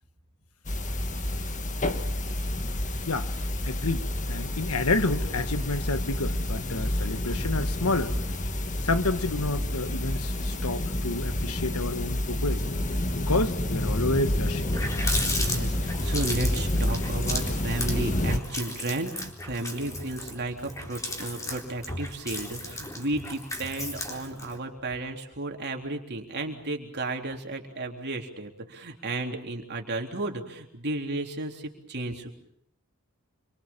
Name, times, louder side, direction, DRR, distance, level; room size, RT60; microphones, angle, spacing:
sound 1, 0.6-18.4, left 1 dB, 35° left, 1.6 m, -29 dB
voice 1, 3.6-8.1 8.8-12.6 13.3-14.7, left 2 dB, 75° left, 11 dB, 1.5 m, -29 dB
Water tap faucet, 14.6-24.6, left 1 dB, 15° left, 3.9 m, -35 dB
voice 2, 15.4-32.3, right 2 dB, 50° right, 3 dB, 3.6 m, -33 dB
27.5 x 24.0 x 7.4 m, 0.70 s
head